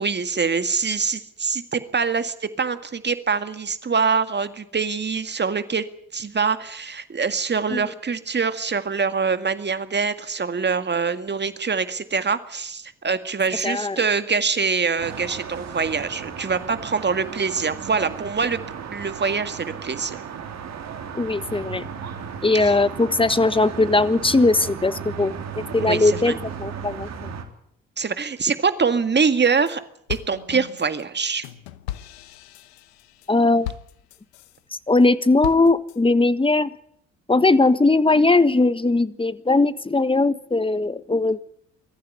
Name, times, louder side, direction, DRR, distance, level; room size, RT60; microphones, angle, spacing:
voice 1, 0.0-5.8 6.1-18.6 18.9-20.2 22.5-22.7 25.8-26.4 28.0-29.8 30.1-31.4, right 5 dB, 35° right, 10 dB, 1.9 m, -24 dB
voice 2, 13.6-14.0 21.1-21.8 22.4-27.1 33.3-33.7 34.9-36.7 37.3-41.4, left 3 dB, 15° left, 14 dB, 1.5 m, -19 dB
sound 1, 15.0-27.4, right 7 dB, 60° right, 3.4 m, -35 dB
sound 2, 29.2-29.7 30.1-34.6 35.0-36.0, left 13 dB, 90° left, 1.0 m, -37 dB
22.5 x 14.5 x 9.6 m, 0.70 s
hypercardioid pair, 55°, 31 cm